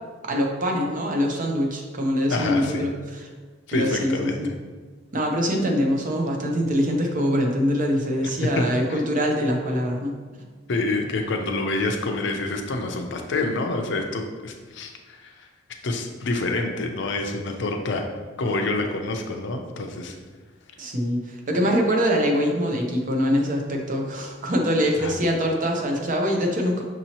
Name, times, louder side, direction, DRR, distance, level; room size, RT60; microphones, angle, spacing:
voice 1, 0.2-3.3 3.7-4.5 5.1-10.1 20.8-26.8, equal, 45° right, 1 dB, 0.6 m, -24 dB
voice 2, 2.3-2.9 3.7-4.5 10.7-15.5 15.8-18.1 18.4-20.1 25.0-25.1, left 2 dB, 65° left, 3 dB, 0.5 m, -27 dB
6.0 x 2.8 x 2.8 m, 1.4 s
head